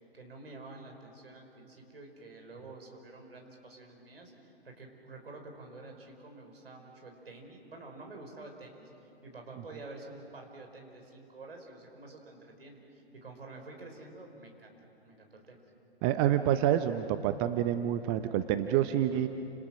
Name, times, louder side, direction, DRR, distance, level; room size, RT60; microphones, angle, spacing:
voice 1, 0.1-8.9 9.2-14.7 15.0-15.6, right 2 dB, 70° right, 2 dB, 5.5 m, -49 dB
voice 2, 16.0-19.3, right 11 dB, 25° right, 9 dB, 0.7 m, -27 dB
30.0 x 27.5 x 6.3 m, 2.9 s
figure-of-eight pair, 120°, 31 cm